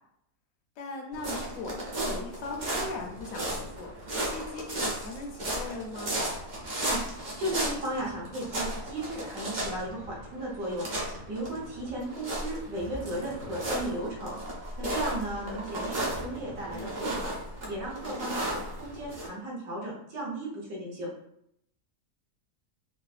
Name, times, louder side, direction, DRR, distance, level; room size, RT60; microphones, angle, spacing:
voice 1, 0.8-1.8 2.0-6.2 16.7-17.2, left 3 dB, 70° left, 1 dB, 1.0 m, -39 dB
sound 1, 1.1-19.3, right 1 dB, 45° right, 0.7 m, -35 dB
voice 2, 6.8-10.9 11.3-14.4 14.8-17.3 17.7-21.1, right 1 dB, 70° right, -4 dB, 1.4 m, -35 dB
4.0 x 2.1 x 2.4 m, 0.75 s
omnidirectional pair, 1.5 m